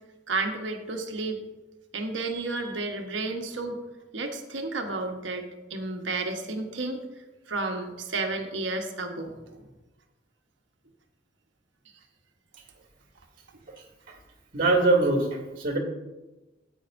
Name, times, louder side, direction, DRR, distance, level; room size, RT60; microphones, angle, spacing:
voice 1, 0.3-1.4 1.9-3.8 4.1-7.0 7.5-9.7, right 3 dB, 80° right, 3 dB, 1.2 m, -32 dB
voice 2, 14.5-15.8, right 2 dB, 50° right, 2 dB, 2.3 m, -22 dB
14.0 x 8.9 x 2.6 m, 1.1 s
head